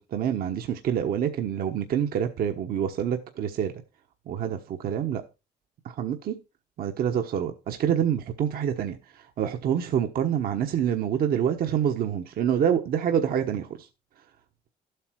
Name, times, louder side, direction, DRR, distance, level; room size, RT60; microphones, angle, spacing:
voice 1, 0.1-3.8 4.3-5.2 5.8-6.4 6.8-13.9, right 9 dB, 60° right, 1.2 m, -27 dB
12.5 x 8.2 x 4.7 m
cardioid pair, 110°, 17 cm